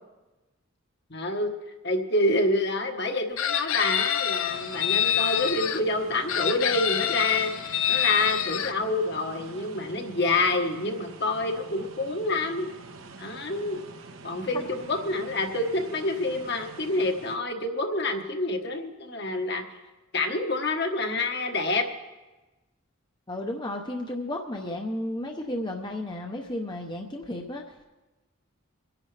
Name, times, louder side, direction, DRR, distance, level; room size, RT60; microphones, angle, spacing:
voice 1, 1.1-1.5 1.8-12.7 13.2-13.8 14.2-19.6 20.1-21.9, left 2 dB, 50° left, 4 dB, 1.2 m, -27 dB
Chicken rooster, 3.4-5.8 6.3-8.7, left 10 dB, 75° left, 0.6 m, -26 dB
sound 1, 4.4-17.4, right 3 dB, 75° right, 1.0 m, -46 dB
voice 2, 23.3-27.9, left 1 dB, 20° left, 2 dB, 0.7 m, -33 dB
23.5 x 10.5 x 3.3 m, 1.1 s
head